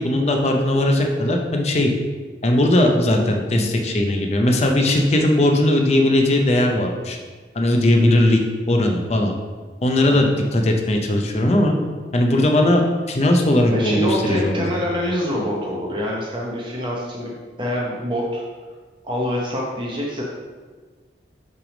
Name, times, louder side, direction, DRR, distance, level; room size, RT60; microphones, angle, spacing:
voice 1, 0.0-1.9 2.4-7.2 7.5-8.4 8.7-9.4 9.8-11.7 12.1-12.8 13.1-14.5, left 1 dB, 35° left, 2 dB, 0.6 m, -18 dB
voice 2, 13.7-17.3 17.6-18.4 19.0-20.2, equal, 25° right, -3 dB, 0.8 m, -25 dB
5.9 x 3.4 x 5.0 m, 1.4 s
head